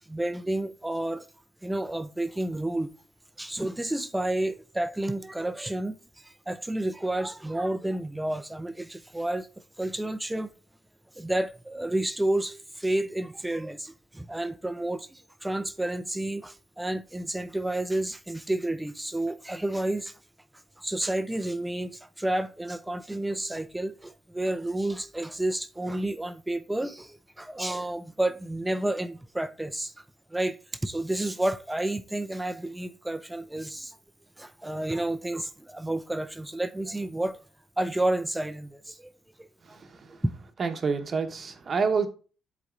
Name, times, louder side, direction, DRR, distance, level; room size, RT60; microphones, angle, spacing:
voice 1, 0.1-1.3 1.6-2.9 3.4-9.5 9.8-10.5 11.1-20.2 20.8-30.0 30.3-34.0 34.4-37.4 37.8-39.1 39.4-39.8 40.2-40.3, right 1 dB, 10° right, 0.4 m, -30 dB
voice 2, 39.7-40.2 40.6-42.1, right 5 dB, 45° right, 0.8 m, -28 dB
10.0 x 4.1 x 2.4 m
cardioid pair, 90°, 0 cm